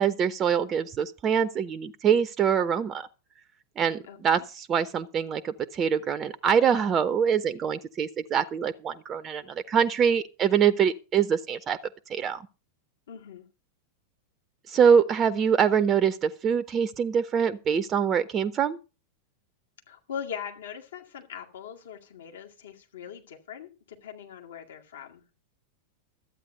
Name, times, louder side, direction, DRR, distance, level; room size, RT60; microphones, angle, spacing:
voice 1, 0.0-3.1 3.8-11.8 12.1-12.4 14.7-18.8, right 7 dB, 25° right, 14 dB, 0.6 m, -24 dB
voice 2, 4.1-4.4 13.1-13.5 19.9-25.2, left 8 dB, 65° left, 2 dB, 2.1 m, -41 dB
12.5 x 9.0 x 5.5 m, 0.32 s
figure-of-eight pair, 90°, 0 cm